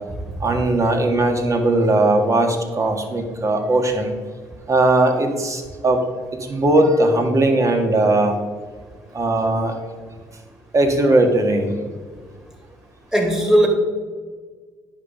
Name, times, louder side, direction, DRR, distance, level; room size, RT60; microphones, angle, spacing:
voice 1, 0.4-4.2 4.7-6.0 6.4-8.4 9.1-9.7 10.7-11.8, right 2 dB, 35° right, 4 dB, 1.9 m, -18 dB
voice 2, 13.1-13.7, right 1 dB, 5° right, 3 dB, 2.5 m, -17 dB
9.3 x 5.9 x 5.3 m, 1.5 s
hypercardioid pair, 55°, 9 cm